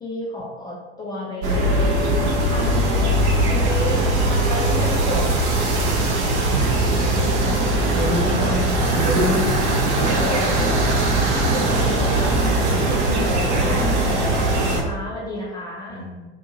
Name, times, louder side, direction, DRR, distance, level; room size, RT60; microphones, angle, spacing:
voice 1, 0.0-1.7 2.2-3.2 3.5-5.9 6.2-6.3 6.5-6.8 7.8-7.9 9.2-9.4 10.0-16.1, left 1 dB, 10° left, -4 dB, 0.3 m, -32 dB
sound 1, 1.4-14.8, right 1 dB, 75° right, 0.7 m, -20 dB
voice 2, 6.5-6.9 7.4-10.2 13.5-14.2 15.9-16.2, left 1 dB, 55° right, -6 dB, 1.4 m, -27 dB
2.8 x 2.5 x 2.8 m, 1.3 s
hypercardioid pair, 80°, 35 cm